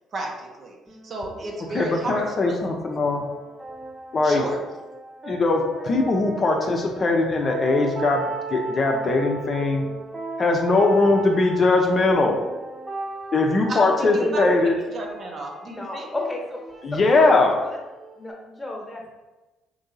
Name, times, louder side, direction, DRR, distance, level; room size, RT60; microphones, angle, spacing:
voice 1, 0.1-0.8 1.0-2.6 4.2-4.6 13.7-16.1, right 2 dB, 50° right, 0 dB, 0.7 m, -33 dB
sound 1, 0.9-18.3, right 3 dB, 15° right, 0.9 m, -37 dB
voice 2, 1.7-3.2 4.1-4.4 5.3-9.8 10.4-12.4 13.3-14.7 16.8-17.6, left 3 dB, 45° left, 2 dB, 0.5 m, -20 dB
voice 3, 14.0-14.5 15.7-16.6 16.9-17.3 17.6-17.8 18.1-19.1, left 1 dB, 20° left, 0 dB, 1.0 m, -32 dB
3.0 x 2.7 x 3.8 m, 1.1 s
supercardioid pair, 60°, 0 cm